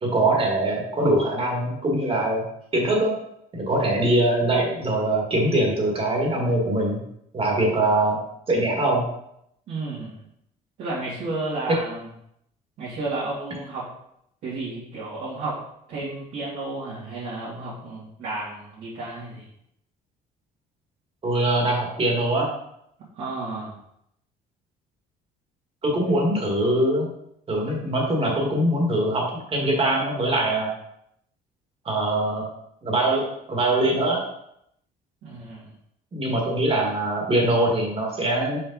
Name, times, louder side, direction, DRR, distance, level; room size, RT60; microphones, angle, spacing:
voice 1, 0.0-2.4 2.7-3.1 3.5-7.0 7.3-8.2 8.5-9.0 21.2-22.5 25.8-27.1 27.5-30.7 31.9-32.4 32.8-34.2 36.1-38.6, right 1 dB, 35° right, -1 dB, 1.9 m, -22 dB
voice 2, 9.7-10.2 10.8-12.0 12.8-13.9 14.4-15.6 15.9-19.5 23.2-23.7 26.1-26.2 35.2-35.7, right 2 dB, 65° right, -10 dB, 2.3 m, -32 dB
5.2 x 4.6 x 3.9 m, 0.76 s
cardioid pair, 110°, 17 cm